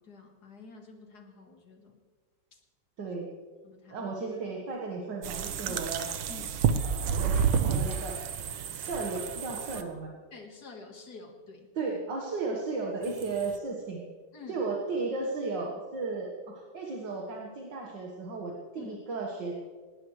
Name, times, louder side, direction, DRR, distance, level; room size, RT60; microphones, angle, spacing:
voice 1, 0.0-2.0 2.5-2.6 3.6-4.1 5.7-5.8 6.3-6.6 9.7-9.9 10.3-11.7 14.3-14.7 18.8-19.0, left 4 dB, 55° left, 3 dB, 2.2 m, -48 dB
voice 2, 3.0-3.3 3.9-6.0 6.8-7.4 7.7-8.2 8.7-10.1 11.8-14.0 14.5-19.5, right 3 dB, 65° right, -1 dB, 2.2 m, -34 dB
sound 1, 5.2-9.8 13.0-13.6, right 7 dB, 90° right, 1.7 m, -30 dB
19.0 x 18.5 x 3.3 m, 1.5 s
omnidirectional pair, 2.1 m